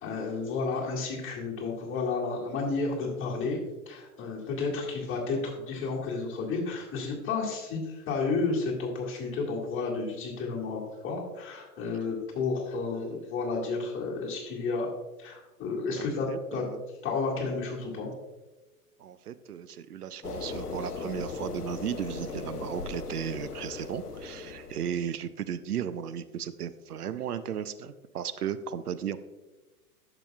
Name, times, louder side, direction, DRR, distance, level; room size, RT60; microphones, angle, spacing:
voice 1, 0.0-3.6 3.9-14.9 15.2-16.6 17.0-18.1, left 4 dB, 25° left, -2 dB, 2.2 m, -31 dB
voice 2, 16.0-16.8 19.0-29.2, right 9 dB, 80° right, 13 dB, 0.6 m, -35 dB
sound 1, 20.2-25.1, left 4 dB, 85° left, 0.8 m, -38 dB
10.5 x 7.0 x 2.3 m, 1.1 s
figure-of-eight pair, 105°, 45 cm